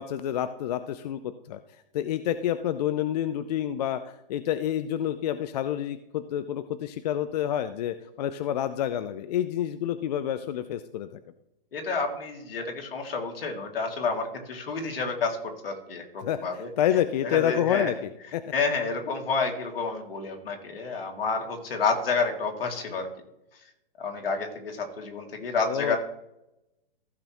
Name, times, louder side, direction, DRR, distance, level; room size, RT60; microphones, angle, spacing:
voice 1, 0.0-1.6 1.9-11.2 16.2-18.4 25.7-26.0, left 10 dB, 45° left, 11 dB, 0.5 m, -28 dB
voice 2, 11.7-15.4 15.6-16.7 17.2-17.9 18.5-23.1 24.0-26.0, left 4 dB, 75° left, 2 dB, 2.6 m, -29 dB
15.0 x 6.7 x 3.0 m, 0.86 s
hypercardioid pair, 140°, 29 cm